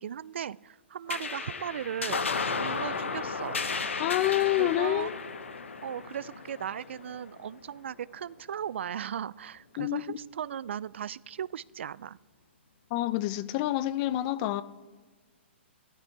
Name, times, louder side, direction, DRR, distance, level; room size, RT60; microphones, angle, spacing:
voice 1, 0.0-2.2 2.6-3.6 4.6-5.1 5.8-12.2, right 9 dB, 70° right, 0.3 m, -37 dB
sound 1, 1.1-7.9, left 4 dB, 85° left, 1.1 m, -34 dB
voice 2, 4.0-5.1 9.8-10.0 12.9-14.6, left 15 dB, 35° left, 0.6 m, -27 dB
14.0 x 11.5 x 4.7 m
hypercardioid pair, 130°, 7 cm